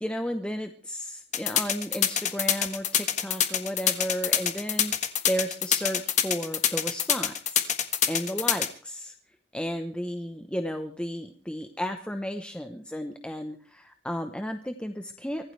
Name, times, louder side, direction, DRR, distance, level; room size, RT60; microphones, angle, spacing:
voice 1, 0.0-4.9 5.3-7.7 8.0-9.1 9.5-15.5, equal, 5° left, 6 dB, 1.0 m, -33 dB
sound 1, 1.3-8.7, left 9 dB, 40° left, 1.5 m, -25 dB
24.5 x 16.0 x 3.3 m, 0.37 s
head